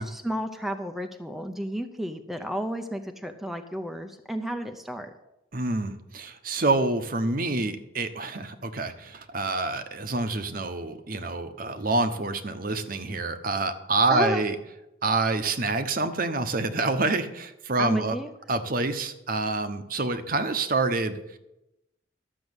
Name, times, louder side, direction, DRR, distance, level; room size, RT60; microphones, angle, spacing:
voice 1, 0.0-5.1 14.1-14.4 17.8-18.3, equal, ahead, 5 dB, 0.6 m, -32 dB
voice 2, 5.5-14.5 15.0-18.2 18.5-21.4, right 3 dB, 50° right, 9 dB, 0.9 m, -27 dB
12.5 x 6.4 x 8.0 m, 0.91 s
head